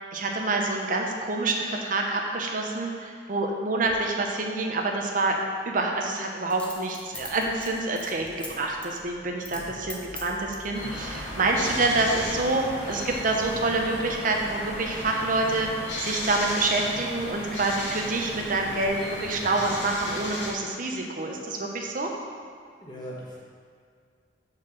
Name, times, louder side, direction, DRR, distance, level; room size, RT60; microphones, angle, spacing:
voice 1, 0.1-5.4 5.7-15.7 16.0-22.1, right 2 dB, 45° right, 1 dB, 0.8 m, -27 dB
Coin (dropping), 3.8-4.0 6.5-8.5 8.8-9.0 9.4-9.6 9.9-10.7 11.3-11.9 12.2-12.3, left 2 dB, 5° left, 0.7 m, -41 dB
sound 1, 7.1-18.9, equal, 10° right, 1.1 m, -49 dB
sound 2, 10.7-20.5, left 1 dB, 90° left, 2.0 m, -35 dB
voice 2, 22.8-23.4, equal, 25° left, -6 dB, 1.4 m, -40 dB
5.6 x 4.7 x 6.5 m, 2.1 s
head